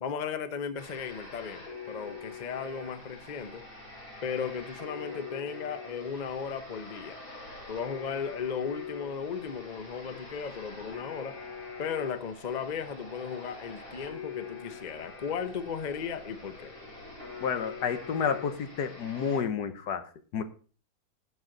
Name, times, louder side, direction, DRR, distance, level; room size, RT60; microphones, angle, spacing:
voice 1, 0.0-3.7 4.2-7.2 7.7-11.4 11.8-16.7, left 6 dB, 35° left, 0.7 m, -36 dB
sound 1, 0.8-19.4, left 4 dB, 55° left, 4.4 m, -44 dB
voice 2, 17.4-20.4, left 6 dB, 75° left, 1.6 m, -30 dB
17.5 x 6.2 x 3.9 m
omnidirectional pair, 1.8 m